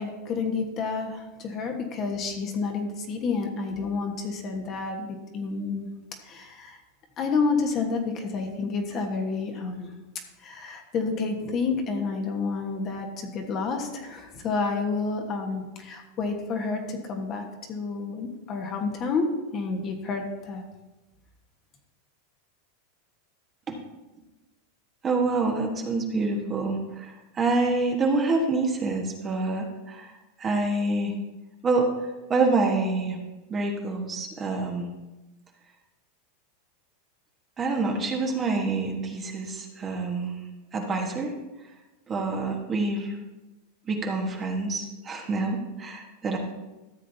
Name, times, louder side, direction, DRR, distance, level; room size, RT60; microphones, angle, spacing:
voice 1, 0.0-5.9 6.2-6.8 7.2-9.9 10.4-20.6, left 4 dB, 35° left, 3 dB, 1.3 m, -29 dB
voice 2, 25.0-30.1 30.4-31.1 31.6-31.9 32.3-33.2 33.5-34.9 37.6-40.4 40.7-41.3 42.1-43.2 43.9-46.4, right 3 dB, 25° right, 1 dB, 1.3 m, -27 dB
13.5 x 7.4 x 2.8 m, 1.1 s
supercardioid pair, 135°, 0 cm